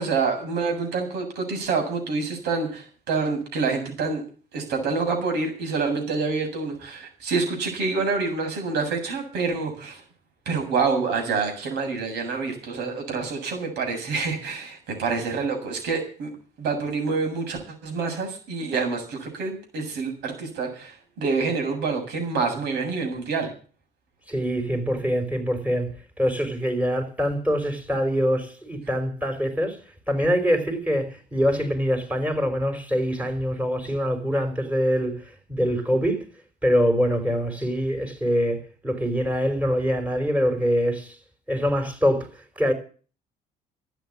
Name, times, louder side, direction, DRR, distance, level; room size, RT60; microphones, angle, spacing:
voice 1, 0.0-4.2 4.5-10.0 10.5-16.3 16.6-23.5, right 4 dB, 80° right, 7.5 m, -27 dB
voice 2, 24.3-29.8 30.1-36.3 36.6-41.2 41.5-42.7, equal, 10° right, 5.1 m, -24 dB
13.0 x 9.1 x 9.8 m
cardioid pair, 110°, 17 cm